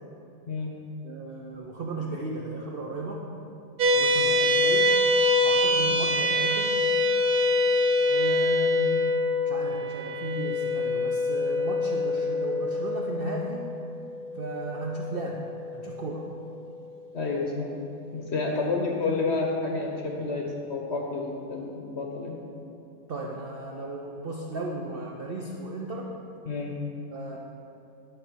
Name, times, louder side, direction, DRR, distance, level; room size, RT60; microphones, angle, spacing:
voice 1, 1.0-3.3 3.9-4.9 5.4-6.8 8.1-9.0 9.4-13.7 14.3-16.3 18.5-19.0 23.1-26.1 27.1-27.4, right 2 dB, 85° right, -1 dB, 0.5 m, -35 dB
sound 1, 3.8-16.4, left 2 dB, 65° right, 1.1 m, -25 dB
voice 2, 17.1-17.7 18.1-22.4 26.5-26.8, left 3 dB, 55° left, 0 dB, 0.9 m, -30 dB
9.9 x 4.0 x 6.1 m, 2.8 s
omnidirectional pair, 1.7 m